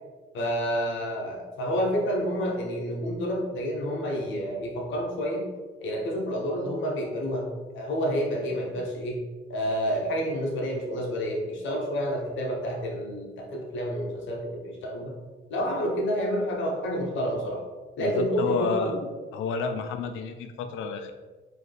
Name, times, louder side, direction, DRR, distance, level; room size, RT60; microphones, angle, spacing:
voice 1, 0.3-5.5 5.8-7.5 7.7-9.2 9.5-15.1 15.5-17.6 18.0-19.0, equal, 75° left, 0 dB, 0.9 m, -29 dB
voice 2, 18.0-19.0 19.3-21.1, left 5 dB, 90° left, 7 dB, 0.4 m, -30 dB
3.9 x 2.8 x 3.3 m, 1.4 s
cardioid pair, 90°, 20 cm